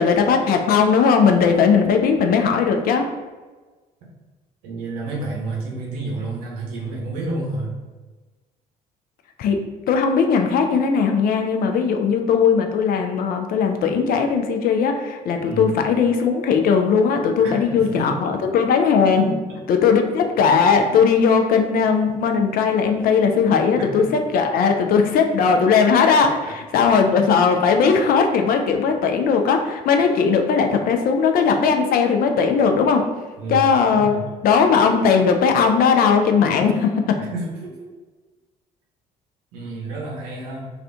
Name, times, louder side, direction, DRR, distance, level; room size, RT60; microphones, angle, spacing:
voice 1, 0.0-3.0 9.4-9.6 9.9-19.4 19.7-24.0 24.3-33.0 33.5-34.1 34.4-37.2, left 6 dB, 50° left, 4 dB, 0.4 m, -18 dB
voice 2, 4.6-7.7 15.4-15.7 17.4-18.2 19.1-19.2 19.5-19.6 23.8-24.1 26.4-26.5 33.4-34.2 37.2-37.8 39.5-40.7, right 3 dB, 75° right, -2 dB, 0.8 m, -30 dB
2.4 x 2.3 x 3.4 m, 1.3 s
figure-of-eight pair, 50°, 20 cm